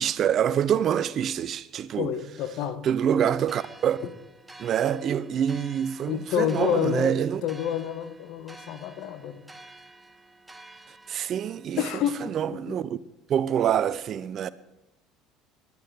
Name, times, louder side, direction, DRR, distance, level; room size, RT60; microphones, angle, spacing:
voice 1, 0.0-2.1 2.8-4.0 4.6-7.4 11.1-11.8 12.3-13.0 13.3-14.5, right 9 dB, 45° right, 0.6 m, -26 dB
voice 2, 2.0-2.9 4.0-4.1 6.1-7.1 7.4-9.4 11.8-12.8, left 10 dB, 60° left, 1.3 m, -29 dB
sound 1, 3.4-11.6, right 2 dB, 10° right, 1.0 m, -50 dB
20.0 x 11.5 x 5.0 m
figure-of-eight pair, 60°, 0 cm